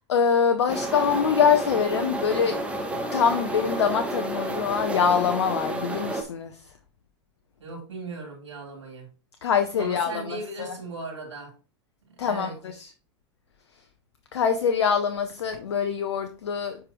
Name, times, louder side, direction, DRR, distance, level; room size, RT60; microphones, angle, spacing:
voice 1, 0.1-2.6 2.9-6.7 9.4-10.7 12.2-12.9 14.3-16.8, left 6 dB, 75° left, 0.8 m, -24 dB
sound 1, 0.7-6.2, right 1 dB, 10° right, 1.3 m, -30 dB
voice 2, 7.6-9.1 9.8-11.5 12.2-12.5, right 3 dB, 85° right, 3.5 m, -37 dB
7.4 x 5.0 x 3.1 m
hypercardioid pair, 95°, 15 cm